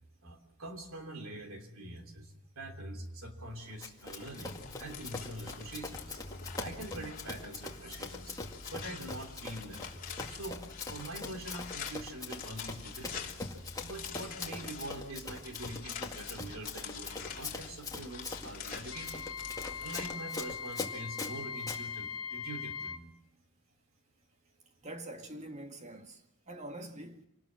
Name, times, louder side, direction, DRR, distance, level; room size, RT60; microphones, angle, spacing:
voice 1, 0.2-8.4 8.7-9.9 10.3-13.3 13.8-19.3 19.8-23.1, right 1 dB, 70° right, 3.2 m, -44 dB
sound 1, 3.6-20.1, left 6 dB, 40° left, 3.1 m, -46 dB
Run, 3.8-21.8, left 3 dB, 15° left, 2.1 m, -43 dB
Wind instrument woodwind instrument, 18.9-23.0, left 6 dB, 90° left, 1.3 m, -40 dB
voice 2, 24.8-27.2, right 1 dB, 35° right, 1.8 m, -45 dB
26.5 x 19.5 x 7.6 m
head